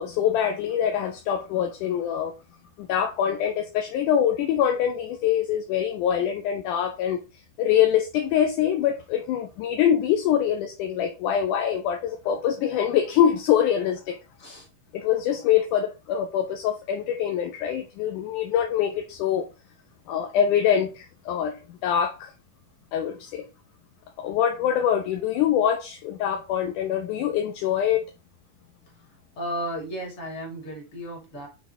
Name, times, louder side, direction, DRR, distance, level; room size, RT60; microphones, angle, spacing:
voice 1, 0.0-2.3 2.8-7.2 7.6-14.2 14.9-19.5 20.1-22.3 22.9-23.5 24.2-28.1, left 9 dB, 75° left, 2.1 m, -24 dB
voice 2, 29.4-31.5, equal, 40° left, 3.1 m, -34 dB
7.1 x 3.6 x 4.0 m
omnidirectional pair, 4.0 m